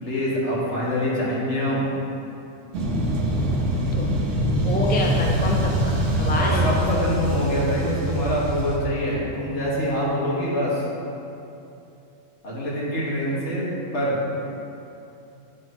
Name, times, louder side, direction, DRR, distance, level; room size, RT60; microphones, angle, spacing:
voice 1, 0.0-1.9 6.4-10.9 12.4-13.7 13.9-14.2, equal, 60° left, -6 dB, 1.8 m, -25 dB
sound 1, 2.7-8.8, right 1 dB, 70° right, 1.2 m, -24 dB
voice 2, 4.6-6.7, left 1 dB, 15° left, -1 dB, 0.3 m, -26 dB
8.4 x 3.0 x 6.0 m, 2.8 s
omnidirectional pair, 1.3 m